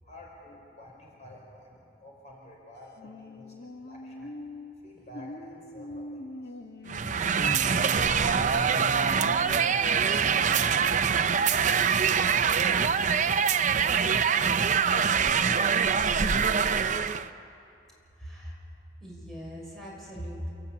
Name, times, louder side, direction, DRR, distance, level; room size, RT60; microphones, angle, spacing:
voice 1, 0.0-4.3 4.7-7.3 7.9-14.3 14.8-16.4, equal, 45° left, -2 dB, 4.9 m, -51 dB
sound 1, 3.0-10.5, left 1 dB, 65° left, 1.2 m, -40 dB
sound 2, 6.9-17.3, right 6 dB, 45° right, 0.6 m, -24 dB
voice 2, 18.2-18.6 19.0-20.5, equal, ahead, -5 dB, 6.4 m, -40 dB
29.0 x 14.5 x 8.7 m, 2.6 s
head